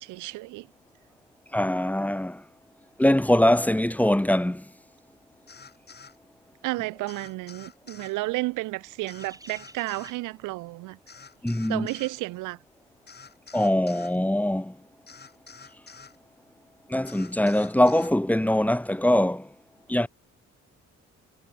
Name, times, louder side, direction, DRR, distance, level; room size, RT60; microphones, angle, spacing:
voice 1, 0.0-0.7 6.6-11.0 11.7-12.6, right 20 dB, 90° right, 0.5 m, -32 dB
voice 2, 1.5-2.4 3.0-4.7 11.4-11.9 13.5-14.8 16.9-19.5 19.9-20.1, left 1 dB, 5° left, 1.4 m, -22 dB
sound 1, 5.5-6.2 7.1-8.2 9.1-10.2 11.1-12.2 13.1-14.2 15.1-16.2 17.1-18.2, left 5 dB, 35° left, 3.3 m, -48 dB
sound 2, 8.4-13.3 13.6-13.9, right 2 dB, 10° right, 6.2 m, -53 dB
cardioid pair, 90°, 30 cm